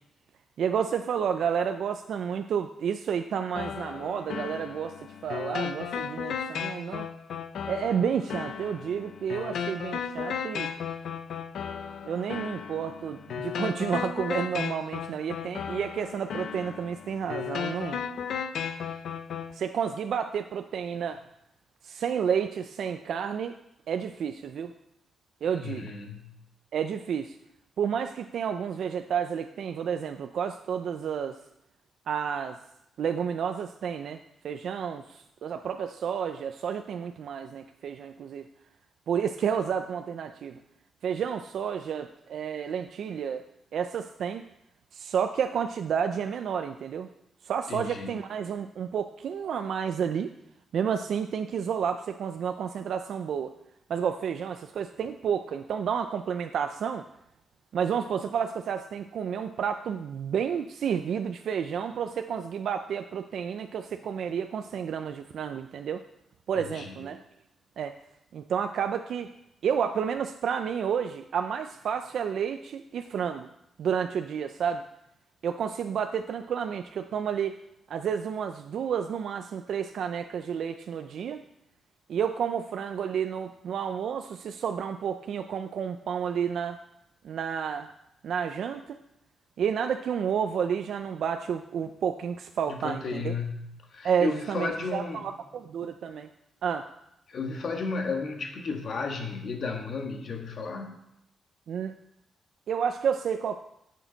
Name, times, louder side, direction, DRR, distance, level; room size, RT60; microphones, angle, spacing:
voice 1, 0.6-7.1 7.6-10.7 12.0-18.0 19.5-21.2 21.8-23.5 23.9-24.7 25.4-25.9 26.7-27.3 27.8-31.4 32.1-32.6 33.0-38.4 39.1-40.6 41.0-43.4 43.7-44.5 44.9-47.1 47.4-50.3 50.7-53.5 53.9-57.1 57.7-66.0 66.5-67.2 67.8-68.0 68.3-69.3 69.6-73.5 73.8-74.8 75.4-77.6 77.9-81.4 82.1-86.8 87.2-87.9 88.2-89.0 89.6-93.3 94.0-96.3 96.6-96.9 101.7-101.9 102.7-103.6, right 7 dB, 60° right, 7 dB, 0.4 m, -30 dB
sound 1, 3.6-19.5, left 7 dB, 65° left, 0.7 m, -35 dB
voice 2, 25.6-26.4 47.7-48.2 66.6-66.9 92.7-95.3 97.3-101.0, left 4 dB, 45° left, 2 dB, 1.5 m, -33 dB
16.5 x 6.4 x 4.0 m, 0.81 s
wide cardioid pair, 170°, 0 cm